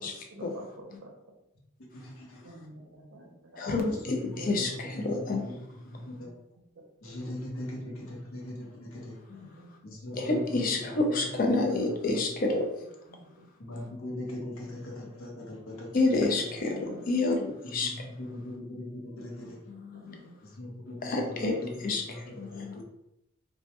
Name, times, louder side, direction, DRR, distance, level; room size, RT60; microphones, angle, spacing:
voice 1, 0.3-1.1 2.4-5.1 5.4-5.5 5.9-6.3 6.8-7.2 8.1-8.2 9.3-9.7 10.4-10.5 12.8-13.8 15.4-15.5 16.5-17.1 19.5-19.6 19.9-20.4, right 2 dB, 60° right, 0 dB, 0.5 m, -50 dB
voice 2, 1.9-2.4 4.1-4.7 5.0-5.5 5.9-6.3 7.0-9.2 9.8-11.2 11.6-11.7 12.1-12.2 13.6-16.5 17.7-19.6 20.4-22.8, left 1 dB, 75° left, -1 dB, 0.6 m, -40 dB
voice 3, 3.6-5.4 9.3-9.5 10.1-12.7 15.9-17.9 19.7-20.2 21.0-21.6 21.8-22.8, left 2 dB, 40° left, 2 dB, 0.4 m, -29 dB
2.1 x 2.1 x 2.8 m, 0.84 s
head